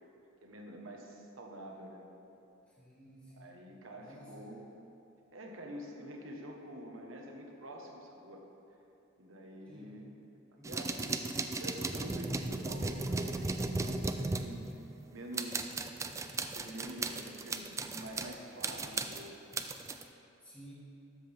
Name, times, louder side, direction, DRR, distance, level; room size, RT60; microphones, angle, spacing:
voice 1, 0.4-2.1 3.4-4.6 5.3-8.4 9.2-10.0 10.7-11.1 11.4-14.7 15.1-15.7 16.5-19.4, right 1 dB, 70° right, 1 dB, 1.2 m, -47 dB
voice 2, 2.7-3.6 4.0-4.6 9.7-10.0 10.6-11.0 20.4-20.7, equal, 5° left, -8 dB, 2.5 m, -54 dB
sound 1, 10.6-15.0 15.3-18.3 18.6-20.0, right 3 dB, 15° right, 0.3 m, -36 dB
13.0 x 7.6 x 3.4 m, 2.8 s
head